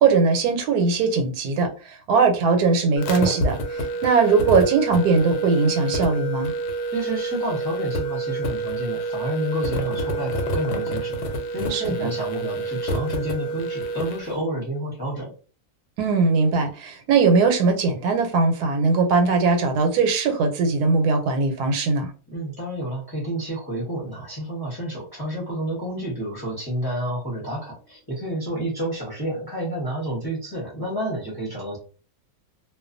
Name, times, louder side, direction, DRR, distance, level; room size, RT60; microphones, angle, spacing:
voice 1, 0.0-1.7 2.1-6.5 11.7-12.1 16.0-22.1, right 4 dB, 85° right, 5 dB, 1.2 m, -20 dB
sound 1, 3.0-14.3, right 2 dB, 85° left, 1.1 m, -28 dB
voice 2, 6.9-15.3 22.3-31.8, right 1 dB, 20° left, -4 dB, 0.7 m, -30 dB
2.4 x 2.2 x 2.5 m, 0.37 s
omnidirectional pair, 1.6 m